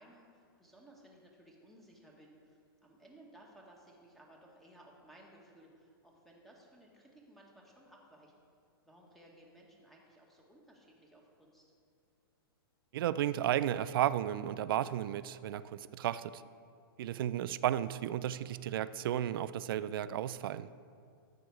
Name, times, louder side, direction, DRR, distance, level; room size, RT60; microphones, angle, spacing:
voice 1, 0.0-8.3 8.8-11.7, right 1 dB, ahead, -2 dB, 1.6 m, -59 dB
voice 2, 12.9-16.4 17.0-20.7, right 11 dB, 65° right, 15 dB, 0.4 m, -33 dB
12.0 x 8.0 x 4.8 m, 2.3 s
hypercardioid pair, 140°, 13 cm